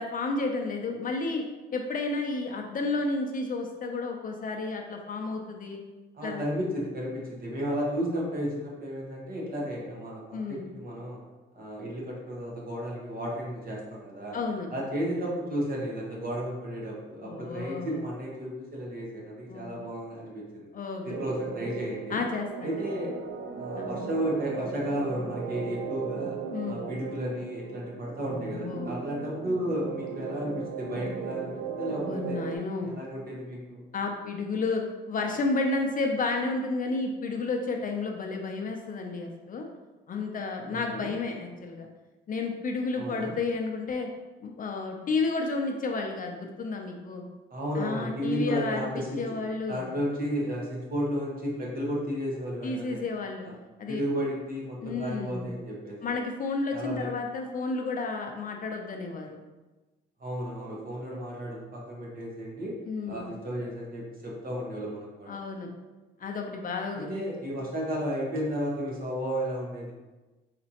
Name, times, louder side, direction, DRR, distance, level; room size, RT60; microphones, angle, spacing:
voice 1, 0.0-1.4 1.7-5.8 6.2-6.4 10.3-10.6 14.3-14.7 17.2-18.0 19.5-19.8 20.7-21.2 22.1-22.7 23.7-23.9 26.5-26.8 28.4-28.9 32.0-32.9 33.9-39.7 40.1-41.9 42.3-44.1 44.4-47.2 47.8-49.8 52.6-53.5 53.8-54.0 54.8-55.5 56.0-59.4 62.8-63.2 65.3-65.7 66.2-67.1, left 3 dB, 45° left, 3 dB, 0.5 m, -31 dB
voice 2, 6.1-11.2 11.5-14.4 14.7-20.7 21.0-22.2 22.6-23.1 23.6-26.4 26.6-32.4 32.8-33.8 40.7-41.1 42.9-43.3 47.5-49.2 49.7-53.0 53.4-53.5 53.9-56.0 56.7-57.1 60.2-62.7 63.0-65.4 66.9-69.9, equal, 45° right, -3 dB, 1.2 m, -33 dB
sound 1, 21.1-32.6, right 6 dB, 80° right, 0.4 m, -37 dB
4.1 x 2.9 x 2.8 m, 1.2 s
cardioid pair, 90°, 20 cm